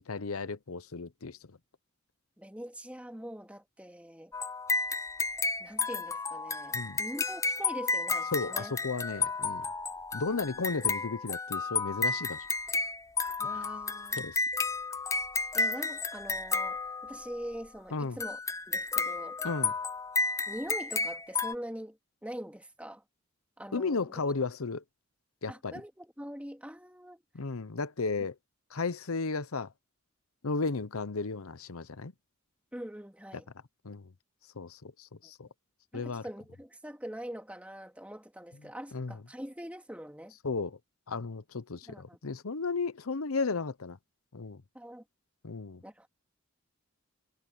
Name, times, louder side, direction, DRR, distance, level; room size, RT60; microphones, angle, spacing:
voice 1, 0.0-1.4 6.7-7.0 8.3-9.7 10.1-12.4 14.2-14.4 17.9-18.2 19.4-19.7 23.7-24.8 25.4-25.7 27.3-28.3 28.7-29.7 30.4-32.1 33.8-34.1 34.6-35.5 35.9-36.2 38.9-39.2 40.4-40.8 41.1-44.0 44.3-44.6 45.4-45.8, left 4 dB, 85° left, 0.9 m, -34 dB
voice 2, 2.4-4.3 5.6-8.7 13.4-14.3 15.5-18.4 18.7-19.4 20.5-23.0 23.6-24.0 25.5-27.2 32.7-33.5 35.2-35.3 35.9-40.3 41.9-42.2 44.7-45.0 45.8-46.1, equal, 5° right, 2.6 m, -43 dB
sound 1, 4.3-17.4 18.2-21.5, left 4 dB, 15° left, 0.5 m, -32 dB
head